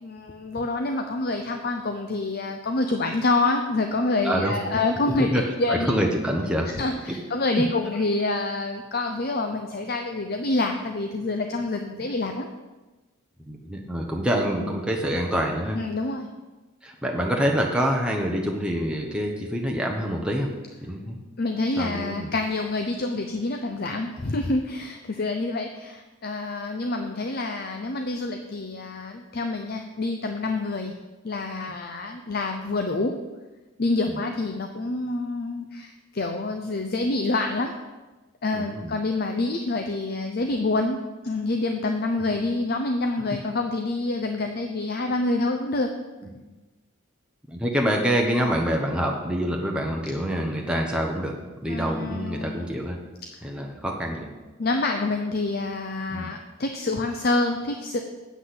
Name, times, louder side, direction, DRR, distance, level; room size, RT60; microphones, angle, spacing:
voice 1, 0.0-5.3 5.6-5.9 6.6-12.5 15.7-16.3 21.4-30.9 31.2-33.2 33.8-37.7 38.4-41.0 41.2-45.9 51.7-52.7 54.6-58.0, left 2 dB, 45° left, 5 dB, 0.6 m, -27 dB
voice 2, 5.3-6.7 7.6-7.7 13.5-15.8 16.8-20.5 20.8-21.2 21.8-22.3 38.5-38.9 42.3-42.4 47.5-51.3 51.6-53.0 53.4-54.3 56.1-56.3, equal, 5° right, -1 dB, 0.9 m, -26 dB
8.2 x 6.2 x 7.7 m, 1.2 s
head